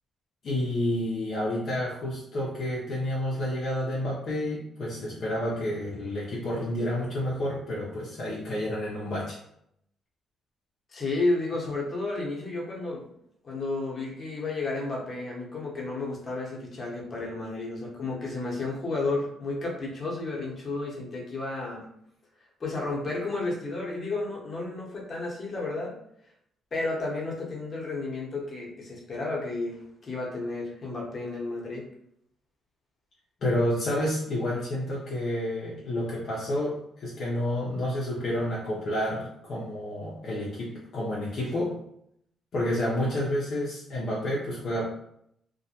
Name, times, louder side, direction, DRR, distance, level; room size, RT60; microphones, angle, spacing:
voice 1, 0.4-9.4 33.4-41.7 42.5-44.8, left 1 dB, 60° left, -6 dB, 0.6 m, -29 dB
voice 2, 10.9-13.0 13.4-21.8 22.6-25.9 26.7-29.8 30.0-31.8, left 2 dB, 40° left, -3 dB, 0.9 m, -32 dB
2.2 x 2.1 x 2.8 m, 0.73 s
cardioid pair, 90°, 0 cm